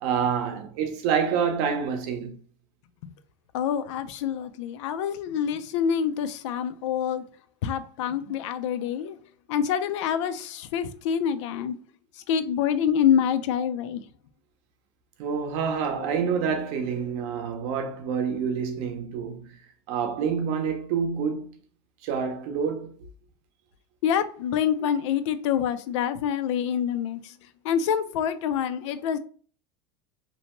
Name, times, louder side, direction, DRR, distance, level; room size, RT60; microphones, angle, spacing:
voice 1, 0.0-2.4 8.3-8.4 15.2-19.6 19.9-21.6 22.0-22.9, right 6 dB, 55° right, 0.6 m, -27 dB
voice 2, 3.5-7.2 7.6-9.2 9.5-11.8 12.3-14.0 24.0-27.3 27.6-29.2, left 8 dB, 90° left, 0.4 m, -26 dB
sound 1, 15.8-18.4, left 4 dB, 60° left, 0.8 m, -45 dB
2.7 x 2.1 x 2.9 m
supercardioid pair, 165°, 15 cm